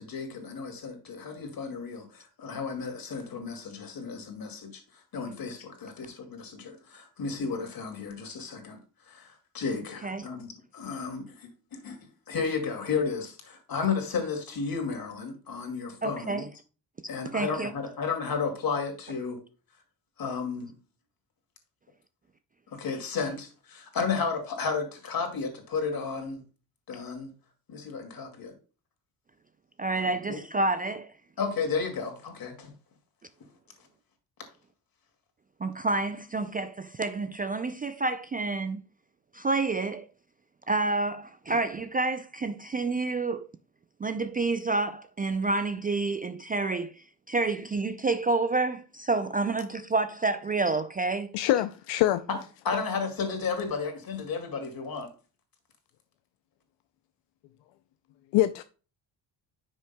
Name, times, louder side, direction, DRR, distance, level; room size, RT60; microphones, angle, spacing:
voice 1, 0.0-4.8 5.1-8.8 9.1-16.5 17.1-19.4 20.2-20.7 22.7-26.4 26.9-27.3 27.7-28.5 30.0-30.4 31.4-32.7 52.3-52.4 52.6-55.1, left 5 dB, 50° left, 2.3 m, -33 dB
voice 2, 16.0-16.5 17.3-17.7 29.8-31.1 35.6-38.8 39.3-40.1 40.7-43.5 44.0-46.9 47.3-51.3, right 3 dB, 20° right, 0.3 m, -29 dB
voice 3, 51.3-52.2 58.3-58.6, left 14 dB, 80° left, 0.5 m, -24 dB
10.0 x 6.2 x 2.2 m
cardioid pair, 80°, 44 cm